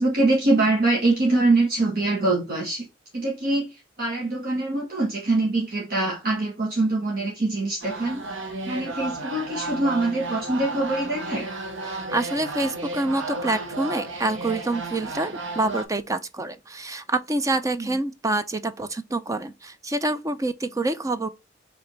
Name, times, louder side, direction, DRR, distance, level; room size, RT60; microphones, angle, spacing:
voice 1, 0.0-2.9 3.1-8.2 8.7-11.5 17.8-17.9, right 2 dB, 50° right, 1.3 m, -24 dB
sound 1, 7.8-15.9, right 2 dB, 70° right, 1.0 m, -33 dB
voice 2, 11.9-21.3, right 2 dB, 15° right, 0.4 m, -27 dB
5.0 x 3.4 x 3.1 m
head